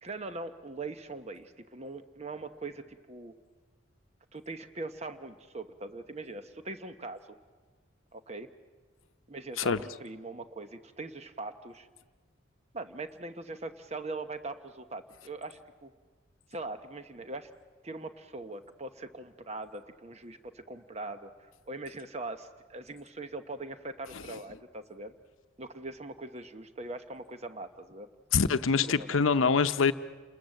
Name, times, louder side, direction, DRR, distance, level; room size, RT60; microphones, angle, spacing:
voice 1, 0.0-3.3 4.3-7.4 8.1-8.5 9.3-11.9 12.7-15.9 16.5-17.5 17.8-25.1 25.6-28.1 28.9-29.2, right 2 dB, 35° right, 9 dB, 1.0 m, -41 dB
voice 2, 28.3-29.9, left 5 dB, 80° left, 11 dB, 0.7 m, -25 dB
29.5 x 20.5 x 7.7 m, 1.4 s
head